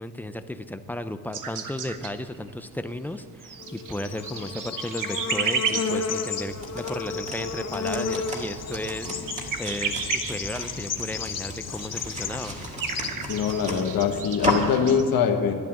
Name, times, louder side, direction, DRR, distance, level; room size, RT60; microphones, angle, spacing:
voice 1, 0.0-12.6, left 1 dB, 5° left, 9 dB, 0.4 m, -34 dB
sound 1, 1.3-2.6 2.9-15.0, right 6 dB, 55° right, 1.1 m, -33 dB
Bird / Insect, 3.6-14.2, left 5 dB, 45° left, 0.9 m, -33 dB
sound 2, 6.5-14.8, equal, 20° right, 1.8 m, -34 dB
voice 2, 13.3-15.5, left 7 dB, 65° left, 4 dB, 1.4 m, -23 dB
12.0 x 11.0 x 7.1 m, 2.4 s
wide cardioid pair, 175°, 37 cm